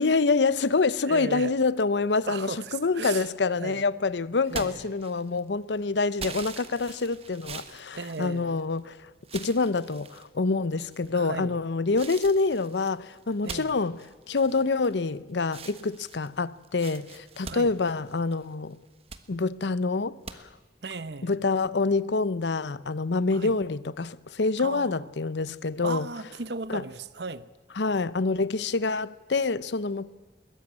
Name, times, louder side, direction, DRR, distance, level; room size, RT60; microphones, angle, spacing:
voice 1, 0.0-14.0 14.3-18.8 19.3-20.5 21.2-26.1 26.7-26.8 27.8-30.1, left 3 dB, 80° left, 0.7 m, -26 dB
voice 2, 1.0-1.6 2.2-3.3 3.6-3.8 4.5-5.0 7.9-8.6 11.1-11.6 13.4-13.8 17.4-17.7 20.8-21.4 23.3-23.5 24.6-25.0 25.8-27.5, right 4 dB, 75° right, 0.9 m, -36 dB
sound 1, 4.5-5.5 6.2-8.8 9.2-10.3 10.9-11.4 11.9-15.1 15.4-18.4 18.8-19.3 20.2-20.4, right 5 dB, 35° right, 1.3 m, -43 dB
21.5 x 17.5 x 8.8 m
head